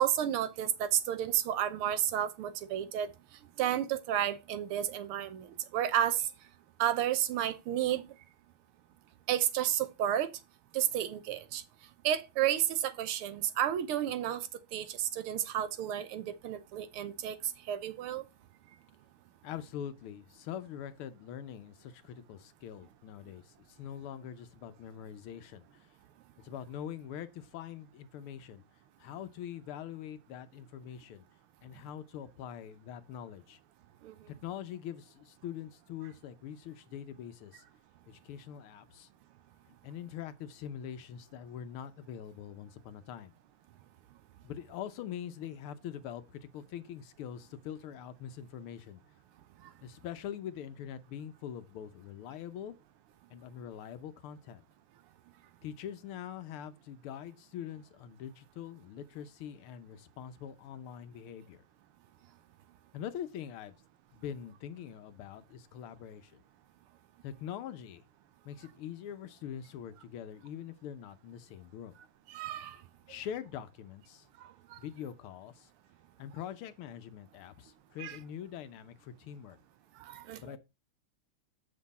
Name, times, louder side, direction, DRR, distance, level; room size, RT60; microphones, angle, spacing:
voice 1, 0.0-3.1 3.6-5.5 5.7-6.3 6.8-8.0 9.3-10.3 10.7-11.6 12.0-17.3 17.7-18.2 34.0-34.2 72.3-72.8 74.4-74.8 78.0-78.2 80.0-80.6, right 11 dB, 90° right, 1.8 m, -31 dB
voice 2, 19.4-25.9 26.4-28.6 29.0-31.2 31.6-33.6 34.3-37.6 38.1-39.1 39.8-43.3 44.4-49.0 49.8-52.7 53.3-54.6 55.6-61.6 62.9-63.7 64.1-66.4 67.2-68.0 68.4-71.9 73.1-74.3 74.8-75.7 76.2-79.6 80.4-80.6, left 9 dB, 85° left, 1.7 m, -43 dB
7.6 x 6.2 x 4.1 m
omnidirectional pair, 2.3 m